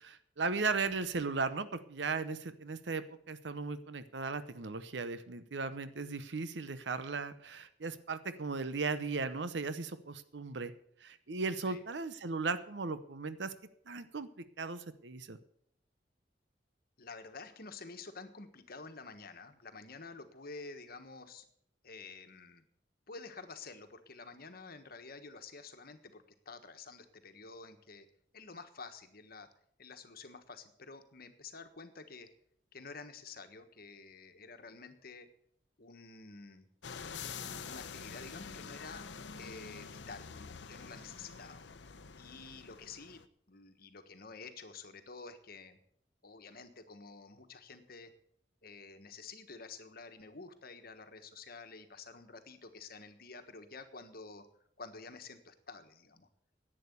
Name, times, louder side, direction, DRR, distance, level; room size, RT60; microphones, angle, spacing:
voice 1, 0.0-10.7 11.0-13.5 13.9-14.3 14.6-15.4, right 4 dB, 85° right, 12 dB, 0.8 m, -37 dB
voice 2, 17.0-21.4 21.8-22.6 23.1-28.1 28.3-29.5 29.8-32.3 32.7-35.3 35.8-36.7 37.6-39.0 39.4-41.6 42.2-45.8 46.2-48.1 48.6-54.5 54.8-56.3, left 4 dB, 60° left, 8 dB, 1.4 m, -50 dB
sound 1, 36.8-43.2, left 5 dB, 85° left, 0.7 m, -46 dB
11.0 x 8.9 x 8.2 m, 0.68 s
head